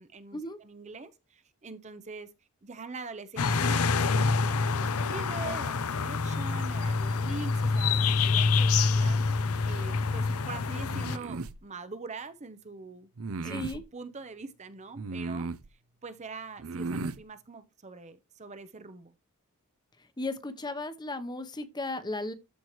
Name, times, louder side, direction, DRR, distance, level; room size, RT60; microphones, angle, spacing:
voice 1, 0.0-2.3 2.6-9.2 9.7-13.1 13.4-15.5 16.0-19.1, right 4 dB, 30° right, 0.7 m, -43 dB
sound 1, 3.4-11.2, left 4 dB, 80° left, 0.7 m, -26 dB
sound 2, 10.9-11.6 13.2-13.8 15.0-15.7 16.6-17.2, right 3 dB, 70° right, 0.6 m, -35 dB
voice 2, 13.4-13.8 20.2-22.3, left 2 dB, 20° left, 0.9 m, -35 dB
13.5 x 4.6 x 3.1 m
head